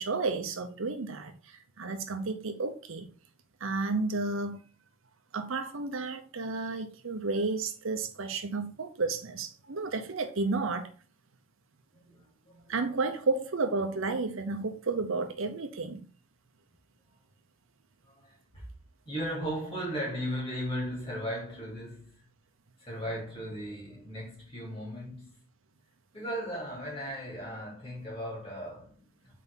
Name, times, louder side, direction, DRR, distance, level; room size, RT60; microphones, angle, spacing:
voice 1, 0.0-3.1 3.6-4.6 5.3-10.9 12.7-16.1, right 3 dB, 65° right, 0.7 m, -32 dB
voice 2, 11.9-12.8 18.0-18.6 19.1-22.3 22.8-25.3 26.1-29.4, equal, 25° left, 2.6 m, -37 dB
4.6 x 3.9 x 5.4 m
head